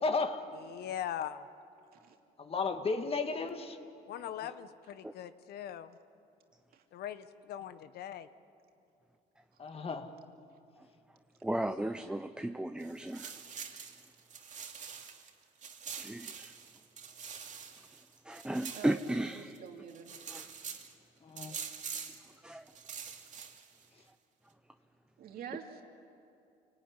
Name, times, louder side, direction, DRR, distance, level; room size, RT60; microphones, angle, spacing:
voice 1, 0.0-0.5 2.4-3.8 9.6-10.1 21.2-21.6, left 4 dB, 35° left, 7 dB, 1.9 m, -33 dB
voice 2, 0.5-1.5 4.1-6.0 6.9-8.3, left 10 dB, 70° left, 12 dB, 1.1 m, -41 dB
voice 3, 11.4-13.4 16.0-16.5 18.2-19.6 20.3-20.5 22.4-22.7, right 1 dB, 5° right, 8 dB, 0.7 m, -35 dB
sound 1, 12.8-15.3 15.6-19.6 19.9-20.9 21.4-22.3 22.7-23.8, right 6 dB, 45° right, 2.4 m, -45 dB
voice 4, 18.7-20.1 25.2-25.8, right 8 dB, 65° right, 3 dB, 2.6 m, -46 dB
28.5 x 19.0 x 9.8 m, 2.6 s
cardioid pair, 110°, 17 cm